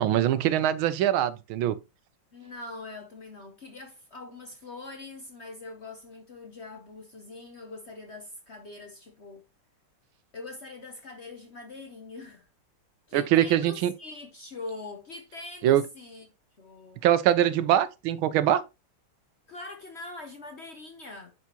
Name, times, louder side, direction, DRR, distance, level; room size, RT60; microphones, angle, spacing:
voice 1, 0.0-1.8 13.1-13.9 15.6-15.8 17.0-18.6, right 11 dB, 85° right, 1.5 m, -23 dB
voice 2, 2.3-9.4 10.3-12.5 13.1-16.3 16.6-17.0 19.5-21.3, left 2 dB, 50° left, 0.8 m, -43 dB
9.7 x 4.8 x 2.9 m
omnidirectional pair, 2.2 m